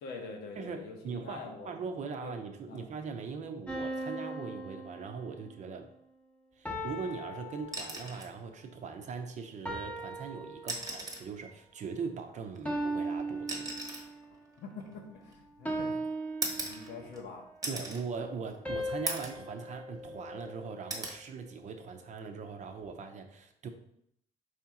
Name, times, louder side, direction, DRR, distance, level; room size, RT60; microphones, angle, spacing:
voice 1, 0.0-1.9 2.2-2.3 2.7-2.9 14.6-16.0 16.5-17.5, left 4 dB, 80° left, 2 dB, 1.0 m, -45 dB
voice 2, 0.6-5.9 6.6-13.7 17.7-23.7, right 5 dB, 45° right, 6 dB, 0.6 m, -40 dB
sound 1, 3.7-5.6 6.6-8.3 9.6-11.2 12.6-14.3 15.6-17.3 18.6-21.0, right 1 dB, 10° left, 0.8 m, -38 dB
sound 2, 7.6-8.4 9.8-9.9 10.6-11.3 12.5-15.6 16.4-17.2 17.6-18.0 18.5-18.6 19.1-19.4 19.9-20.5 20.9-21.2 22.7-22.9, right 2 dB, 20° right, 1.0 m, -39 dB
4.9 x 2.9 x 3.6 m, 0.72 s
cardioid pair, 110°, 17 cm